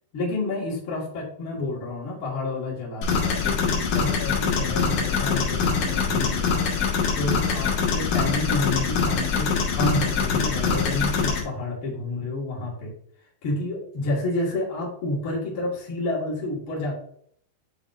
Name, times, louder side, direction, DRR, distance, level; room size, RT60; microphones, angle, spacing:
voice 1, 0.1-6.6 7.1-12.9 13.4-16.9, left 2 dB, 85° left, -6 dB, 1.1 m, -29 dB
sound 1, 3.0-11.4, left 5 dB, 65° left, 2.1 m, -24 dB
9.7 x 4.1 x 2.6 m, 0.64 s
omnidirectional pair, 5.9 m